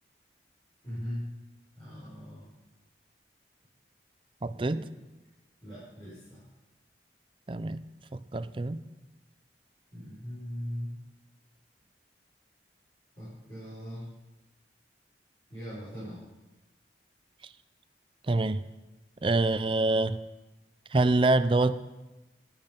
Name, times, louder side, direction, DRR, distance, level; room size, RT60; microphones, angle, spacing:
voice 1, 0.8-1.3 1.8-2.5 4.5-4.8 5.6-6.4 9.9-11.0 13.2-14.1 15.5-16.2, equal, 30° left, -11 dB, 4.9 m, -40 dB
voice 2, 4.4-4.8 7.5-7.8 8.1-8.8 18.3-18.6 19.2-20.2 20.9-21.7, right 2 dB, 30° right, 13 dB, 0.4 m, -25 dB
11.0 x 10.5 x 5.2 m, 1.1 s
head